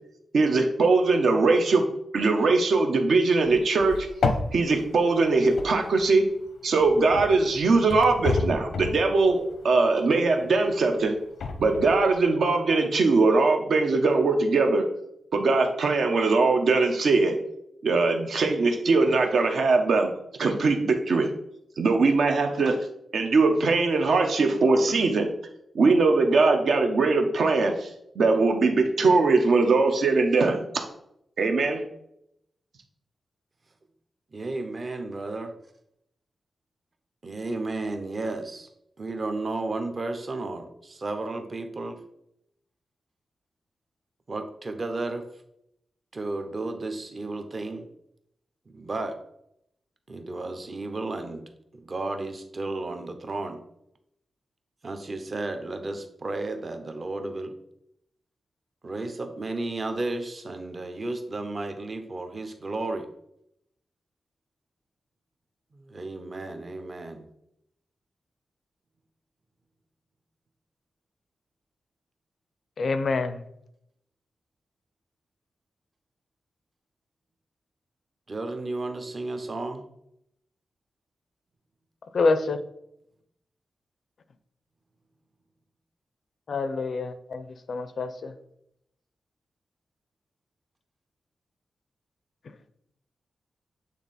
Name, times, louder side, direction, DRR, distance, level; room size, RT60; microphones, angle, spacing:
voice 1, 0.3-1.9 2.1-4.1 4.5-6.3 6.6-11.2 11.6-14.9 15.3-17.4 17.8-20.1 20.4-21.3 21.8-22.8 23.1-25.3 25.7-27.9 28.1-30.8 31.4-31.8, right 3 dB, 70° right, 4 dB, 0.9 m, -21 dB
sound 1, 3.4-6.4 6.8-10.2 10.7-12.2, left 4 dB, 90° left, 0.8 m, -32 dB
voice 2, 34.3-35.5 37.2-38.7 39.0-42.0 44.3-45.2 46.1-47.9 48.7-49.2 50.1-51.4 51.7-53.6 54.8-57.5 58.8-63.1 65.7-67.3 78.3-79.9, right 2 dB, 35° right, 7 dB, 0.7 m, -33 dB
voice 3, 72.8-73.4 82.1-82.6 86.5-88.3, left 3 dB, 55° left, 11 dB, 0.5 m, -26 dB
8.3 x 3.6 x 4.1 m, 0.78 s
wide cardioid pair, 170°, 0 cm